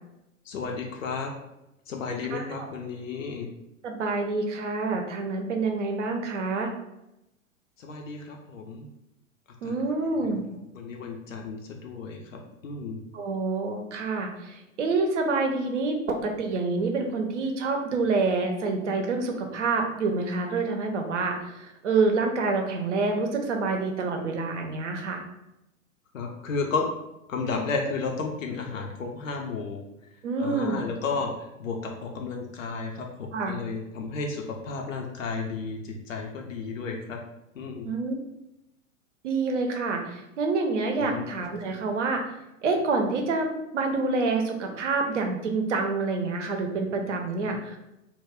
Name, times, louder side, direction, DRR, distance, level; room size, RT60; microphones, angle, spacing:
voice 1, 0.5-1.3 1.9-3.5 7.8-8.9 9.6-9.8 10.1-13.0 26.1-26.9 27.3-29.8 30.4-37.2 37.5-37.9 40.9-41.3 47.5-47.6, left 4 dB, 70° left, 1 dB, 0.5 m, -33 dB
voice 2, 2.3-2.7 3.8-6.7 9.6-10.4 13.1-25.2 30.2-30.8 33.3-33.6 37.9-38.1 39.2-42.3 42.6-43.5 43.7-47.8, right 3 dB, 60° right, 3 dB, 0.6 m, -27 dB
2.2 x 2.2 x 3.4 m, 0.88 s
figure-of-eight pair, 100°, 41 cm